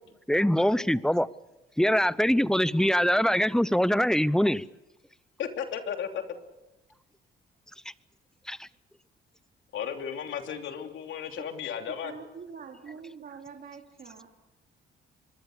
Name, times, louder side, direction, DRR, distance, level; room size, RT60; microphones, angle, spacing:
voice 1, 0.3-1.3 1.8-4.7 7.8-7.9 8.5-8.7, equal, 5° left, 0.7 m, -23 dB
voice 2, 5.4-6.2 9.7-12.1, left 8 dB, 75° left, 3.1 m, -34 dB
voice 3, 12.0-14.3, right 6 dB, 50° right, 2.9 m, -44 dB
25.0 x 21.5 x 6.7 m
cardioid pair, 90°, 20 cm